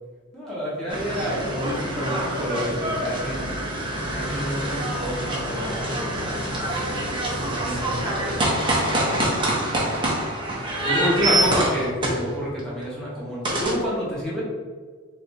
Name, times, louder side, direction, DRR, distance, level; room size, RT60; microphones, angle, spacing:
voice 1, 0.3-3.5 4.1-5.8 6.5-8.6 9.0-10.0 10.8-14.4, equal, 5° left, -8 dB, 1.0 m, -29 dB
sound 1, 0.9-12.6 13.4-13.7, right 1 dB, 20° right, 0.7 m, -25 dB
3.4 x 2.7 x 4.1 m, 1.6 s
head